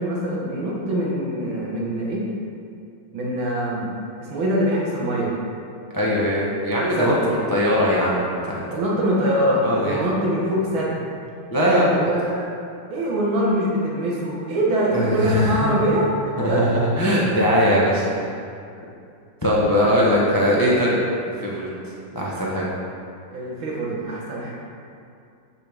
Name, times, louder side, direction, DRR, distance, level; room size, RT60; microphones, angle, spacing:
voice 1, 0.0-2.2 3.1-3.9 4.2-5.3 7.0-7.2 8.7-11.0 11.6-12.6 12.9-16.7 19.8-19.9 23.3-24.5, right 1 dB, 75° right, -4 dB, 2.0 m, -23 dB
voice 2, 5.9-8.6 9.6-10.0 11.5-11.8 14.9-15.8 16.4-18.0 19.4-21.0 21.4-21.7 22.1-22.7, equal, 35° left, -5 dB, 0.3 m, -20 dB
8.3 x 6.8 x 3.5 m, 2.4 s
omnidirectional pair, 2.3 m